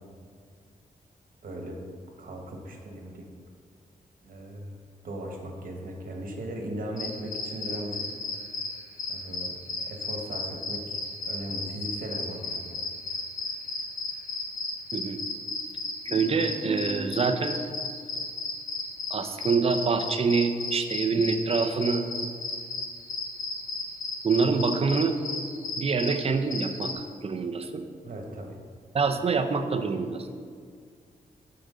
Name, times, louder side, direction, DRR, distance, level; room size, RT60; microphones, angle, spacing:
voice 1, 1.4-1.8 2.2-3.2 4.2-4.8 5.0-8.0 9.1-12.8 28.0-28.6, right 1 dB, 65° right, 1 dB, 1.4 m, -38 dB
sound 1, 7.0-26.9, left 2 dB, 60° left, 1.4 m, -34 dB
voice 2, 14.9-15.2 16.0-17.6 19.1-22.0 24.2-25.2 25.8-27.8 28.9-30.3, right 4 dB, 40° right, 7 dB, 0.6 m, -26 dB
13.0 x 4.9 x 3.9 m, 2.2 s
wide cardioid pair, 115°, 15 cm